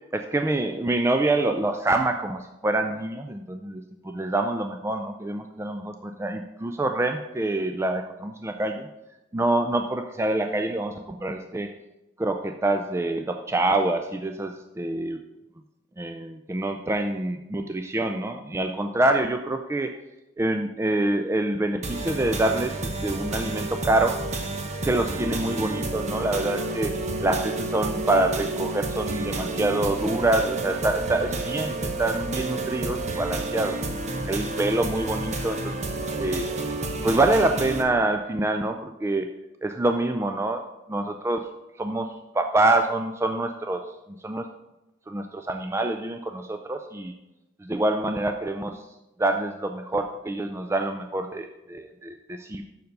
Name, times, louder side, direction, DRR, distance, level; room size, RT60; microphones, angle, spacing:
voice 1, 0.1-8.9 9.3-11.7 12.2-15.2 16.0-19.9 20.4-24.2 24.8-33.8 34.3-35.8 36.2-36.5 37.0-39.3 39.6-40.6 40.9-41.4 41.8-42.1 42.3-43.8 44.2-44.5 45.1-47.1 47.6-48.9 49.2-52.6, right 2 dB, 15° right, 6 dB, 0.3 m, -26 dB
sound 1, 21.8-37.8, right 2 dB, 35° right, 0.9 m, -30 dB
6.9 x 6.6 x 5.3 m, 0.96 s
head